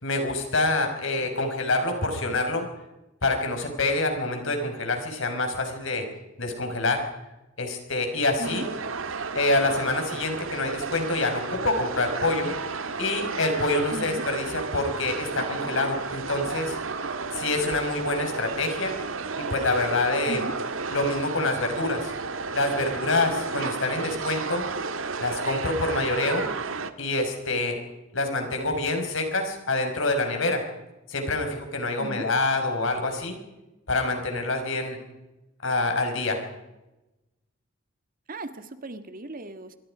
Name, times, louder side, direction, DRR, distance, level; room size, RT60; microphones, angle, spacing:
voice 1, 0.0-2.7 3.2-6.1 6.4-7.0 7.6-8.7 9.3-12.5 13.0-16.8 17.3-18.9 19.5-20.4 20.9-22.1 22.5-24.6 25.2-26.5 27.0-27.8 28.1-30.6 31.1-33.4 33.9-35.0 35.6-36.4, left 2 dB, 70° left, 5 dB, 5.5 m, -26 dB
sound 1, 8.4-26.9, right 4 dB, 75° right, 1.6 m, -32 dB
voice 2, 13.9-14.2 20.3-20.5 32.0-32.2 38.3-39.8, right 2 dB, 45° right, 9 dB, 1.9 m, -36 dB
26.5 x 23.5 x 5.1 m, 0.99 s
head